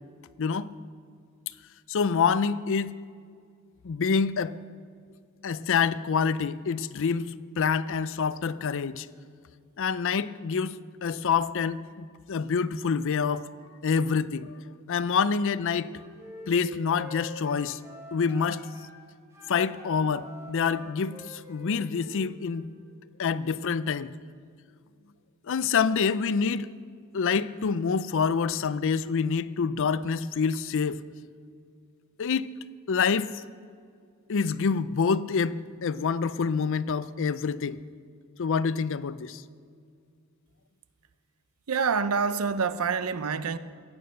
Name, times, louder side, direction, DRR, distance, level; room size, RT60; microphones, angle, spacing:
voice 1, 1.9-3.0 3.8-4.6 5.4-9.1 9.8-13.5 13.8-14.6 14.9-15.9 16.5-17.8 18.1-18.6 19.5-22.7 23.2-24.1 25.5-26.7 27.1-31.0 32.2-32.5 32.9-33.5 34.3-37.8 38.4-39.4, left 5 dB, 60° left, 0.5 m, -27 dB
Wind instrument woodwind instrument, 15.8-18.9 19.3-22.7, equal, 15° right, 3.2 m, -47 dB
voice 2, 41.7-43.6, right 5 dB, 80° right, 0.7 m, -26 dB
16.0 x 9.8 x 6.5 m
head